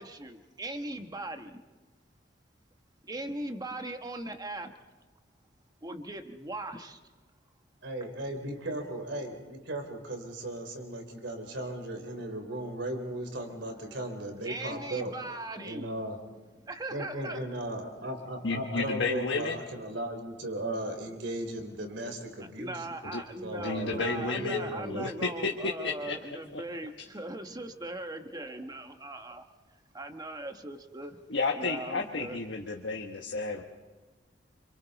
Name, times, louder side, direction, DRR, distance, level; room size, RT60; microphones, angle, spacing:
voice 1, 0.0-1.6 3.0-4.7 5.8-7.0 14.4-15.9 16.6-17.5 22.4-29.5 29.9-31.2 31.6-32.4, right 2 dB, 20° right, 6 dB, 1.3 m, -39 dB
voice 2, 7.8-15.1 15.6-16.2 16.9-22.7 23.4-25.1, right 1 dB, 75° right, 6 dB, 3.6 m, -36 dB
voice 3, 18.4-19.6 23.1-23.2 23.6-24.6 24.9-26.2 26.5-26.6 31.3-33.6, left 3 dB, 75° left, 1 dB, 1.4 m, -32 dB
28.0 x 26.0 x 4.1 m, 1.3 s
head